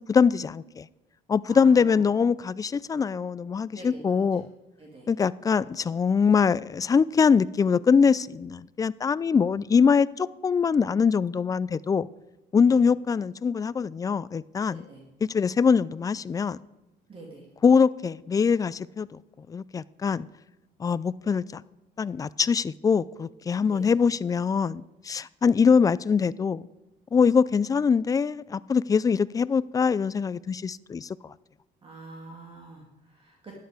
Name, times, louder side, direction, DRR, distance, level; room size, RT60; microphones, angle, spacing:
voice 1, 0.1-0.8 1.3-4.5 5.1-12.1 12.5-14.8 15.3-16.6 17.6-19.2 19.5-20.3 20.8-21.6 22.0-26.6 27.1-31.1, left 6 dB, 20° left, 0.3 m, -23 dB
voice 2, 1.5-2.0 3.7-4.5 4.8-5.1 12.6-12.8 14.7-15.0 17.1-17.5 23.7-23.9 31.8-33.6, right 2 dB, 30° right, 2.2 m, -46 dB
12.5 x 10.5 x 4.9 m
cardioid pair, 120°, 18 cm